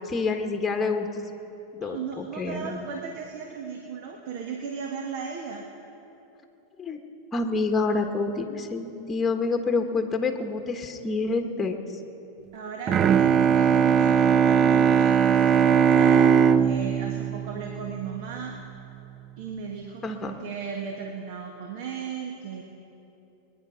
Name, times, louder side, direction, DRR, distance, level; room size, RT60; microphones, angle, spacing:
voice 1, 0.1-1.1 1.7-2.8 6.8-7.0 7.3-11.8 20.0-20.3, left 3 dB, 15° left, 5 dB, 1.3 m, -27 dB
voice 2, 1.8-5.7 12.5-18.6 19.4-22.6, right 6 dB, 60° right, 2 dB, 1.5 m, -36 dB
Bowed string instrument, 12.9-18.5, right 7 dB, 30° right, 0.4 m, -20 dB
22.5 x 10.0 x 5.7 m, 3.0 s
supercardioid pair, 125°, 0 cm